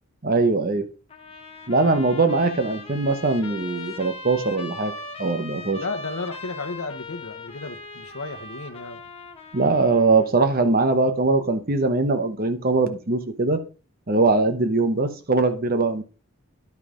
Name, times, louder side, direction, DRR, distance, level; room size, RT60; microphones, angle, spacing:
voice 1, 0.2-0.8 1.7-4.9 5.2-5.8 9.5-13.6 14.1-16.0, right 3 dB, 40° right, 0.9 m, -21 dB
Trumpet, 1.1-10.3, left 3 dB, 25° left, 1.1 m, -40 dB
voice 2, 5.8-9.0, left 3 dB, 70° left, 0.9 m, -33 dB
10.5 x 5.4 x 3.8 m
head